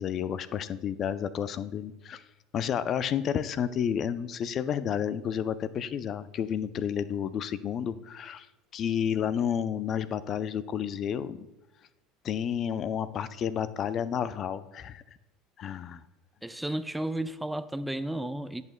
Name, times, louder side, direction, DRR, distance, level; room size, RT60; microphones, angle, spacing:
voice 1, 0.0-2.3 2.5-8.5 8.7-11.4 12.2-15.0 15.6-16.0, left 8 dB, 45° left, 14 dB, 0.5 m, -31 dB
voice 2, 16.4-18.6, right 1 dB, 5° right, 13 dB, 0.5 m, -33 dB
17.0 x 8.1 x 2.2 m, 0.98 s
hypercardioid pair, 75°, 0 cm